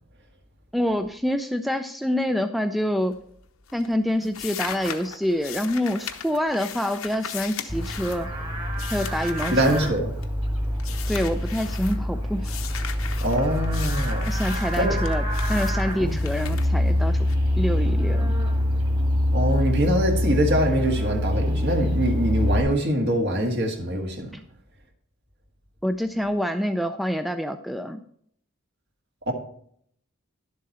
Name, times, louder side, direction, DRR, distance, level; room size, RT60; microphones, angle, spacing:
voice 1, 0.7-3.2 3.7-8.3 8.9-9.9 11.1-12.6 14.3-15.2 15.5-17.2 17.6-18.3 24.3-24.4 25.8-28.0, equal, ahead, 0.3 m, -26 dB
sound 1, 3.0-3.4 3.7-10.4 10.8-12.0 12.4-17.3, left 8 dB, 80° left, 0.9 m, -38 dB
Livestock farm animals working animals, 7.7-22.6, left 1 dB, 20° right, 2.0 m, -25 dB
voice 2, 9.5-10.1 13.2-14.3 14.8-15.0 16.0-16.2 19.3-24.3 29.3-29.4, right 1 dB, 55° right, 1.8 m, -23 dB
11.0 x 7.4 x 4.2 m
head